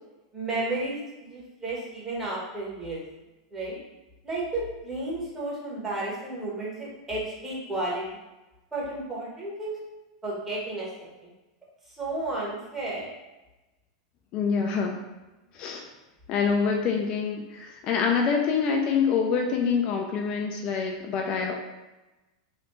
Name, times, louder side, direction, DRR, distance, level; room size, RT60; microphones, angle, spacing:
voice 1, 0.3-3.0 3.5-3.8 4.2-8.0 8.7-9.8 10.2-10.9 11.2-11.3 11.9-13.1, right 2 dB, 20° right, -6 dB, 1.3 m, -32 dB
voice 2, 14.3-15.0 15.5-15.8 16.3-21.6, left 5 dB, 45° left, 2 dB, 0.4 m, -26 dB
3.1 x 2.4 x 3.1 m, 1.1 s
figure-of-eight pair, 90°, 2 cm